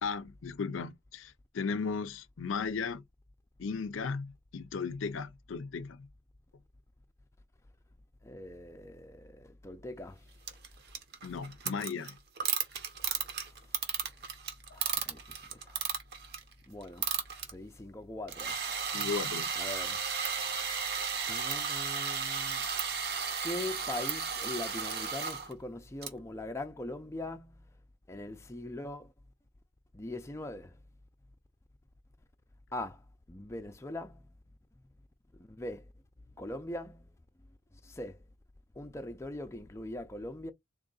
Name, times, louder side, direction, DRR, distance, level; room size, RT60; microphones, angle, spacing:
voice 1, 0.0-3.0 3.6-6.1 11.2-12.2 18.9-19.5, left 5 dB, 70° left, 0.5 m, -36 dB
voice 2, 8.2-10.3 13.2-13.8 14.7-15.8 16.7-17.1 17.4-18.6 19.6-20.0 21.3-22.7 23.4-27.7 28.1-29.1 29.9-30.8 32.7-34.3 34.8-34.9 35.3-35.9 36.4-37.1 37.7-38.2 38.7-40.5, left 1 dB, 15° left, 0.5 m, -42 dB
sound 1, 10.5-16.5 16.8-17.5 18.3-25.5 26.0-26.1, right 6 dB, 50° right, 1.0 m, -34 dB
3.7 x 3.0 x 3.9 m
head